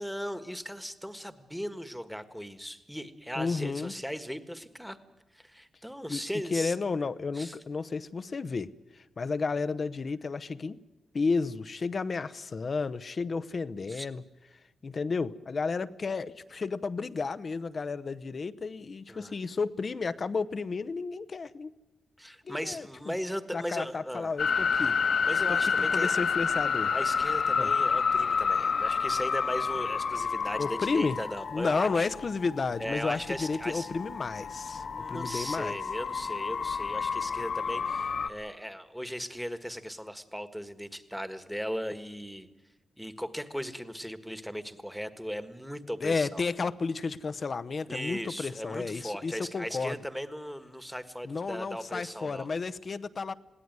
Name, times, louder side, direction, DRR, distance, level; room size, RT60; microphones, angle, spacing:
voice 1, 0.0-5.0 5.3-6.7 7.3-7.5 13.9-14.1 19.1-19.3 22.2-24.3 25.2-26.1 26.9-32.1 32.8-33.9 34.9-42.5 43.0-46.4 47.9-52.5, equal, ahead, 10 dB, 1.6 m, -37 dB
voice 2, 3.4-3.9 6.1-6.2 6.5-10.8 11.1-14.2 14.8-21.7 22.5-23.1 23.5-25.0 25.5-26.9 27.6-27.7 30.6-31.2 31.5-35.8 46.0-50.0 51.2-53.3, left 4 dB, 45° left, 12 dB, 0.8 m, -32 dB
sound 1, 24.4-38.3, left 6 dB, 65° left, 1.5 m, -29 dB
21.5 x 17.0 x 9.4 m, 1.0 s
cardioid pair, 85°, 0 cm